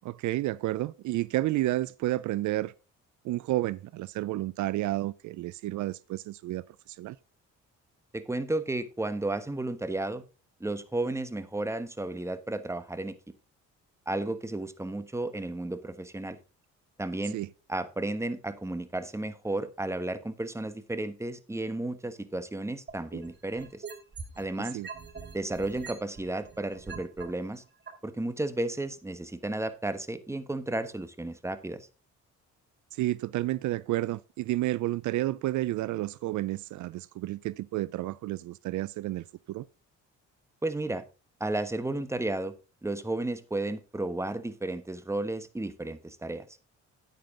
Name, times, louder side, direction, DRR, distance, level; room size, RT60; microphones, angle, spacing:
voice 1, 0.0-2.7 3.2-7.2 17.3-17.5 24.7-24.9 32.9-39.6, right 16 dB, 75° right, 0.5 m, -31 dB
voice 2, 8.1-10.2 10.6-13.1 14.1-16.4 17.0-17.4 17.7-23.8 24.4-24.8 25.3-27.6 28.0-31.9 40.6-41.0 41.4-42.5 42.8-46.5, right 2 dB, 10° right, 1.2 m, -33 dB
sound 1, 22.9-24.5 24.8-27.2 27.9-28.0, right 6 dB, 35° right, 4.0 m, -41 dB
9.5 x 9.1 x 3.7 m
cardioid pair, 90°, 30 cm